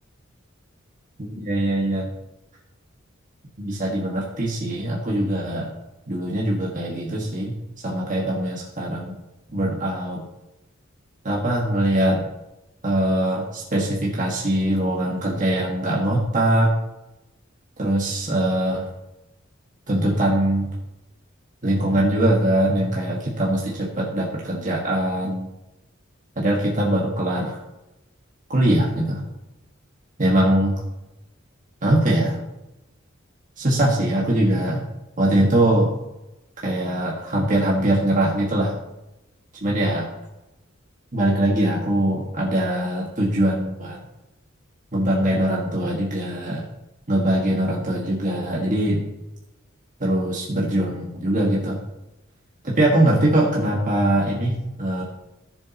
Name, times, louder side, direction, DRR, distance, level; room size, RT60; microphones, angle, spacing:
voice 1, 1.2-2.1 3.6-5.7 6.1-7.5 7.8-9.1 9.5-10.2 11.2-12.3 12.8-16.7 17.8-18.9 19.9-20.7 21.6-25.5 26.3-27.6 28.5-29.2 30.2-30.8 31.8-32.4 33.6-34.9 35.2-35.9 36.6-38.7 39.6-40.1 41.1-44.0 44.9-46.6 47.1-49.0 50.0-51.8 52.6-55.0, right 1 dB, 40° right, -4 dB, 1.6 m, -22 dB
17.0 x 7.3 x 2.9 m, 0.96 s
head